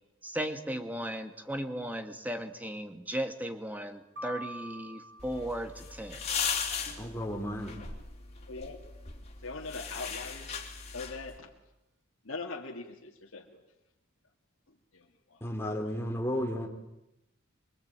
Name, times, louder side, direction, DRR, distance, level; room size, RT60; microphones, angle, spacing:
voice 1, 0.2-6.2, equal, 10° right, 7 dB, 2.0 m, -36 dB
sound 1, 4.2-6.3, right 1 dB, 55° right, 5.4 m, -45 dB
sound 2, 5.2-11.4, left 6 dB, 30° left, 3.9 m, -38 dB
voice 2, 7.0-7.8 15.4-16.7, equal, 10° left, 2 dB, 3.7 m, -33 dB
voice 3, 8.5-8.8 9.4-10.5 10.9-11.5 12.2-13.6 14.9-15.4, left 3 dB, 70° left, 0 dB, 2.3 m, -41 dB
24.0 x 24.0 x 9.0 m, 0.91 s
head